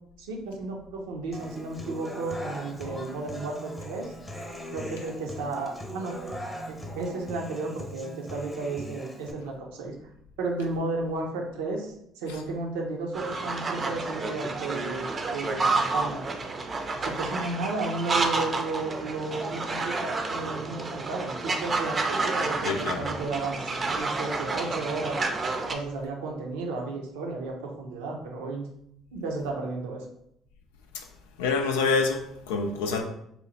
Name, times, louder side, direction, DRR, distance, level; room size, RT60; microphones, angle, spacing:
voice 1, 0.2-4.1 4.7-6.1 6.7-9.9 10.4-16.2 17.0-25.2 25.7-28.7 29.1-30.0, right 3 dB, 85° right, 0.6 m, -33 dB
Human voice / Acoustic guitar, 1.3-9.3, equal, 20° left, 0.8 m, -40 dB
sound 1, 13.1-25.7, right 3 dB, 35° right, 0.5 m, -30 dB
voice 2, 22.6-23.0 31.4-33.0, left 4 dB, 90° left, 0.4 m, -26 dB
3.0 x 2.1 x 4.0 m
supercardioid pair, 65°, 0 cm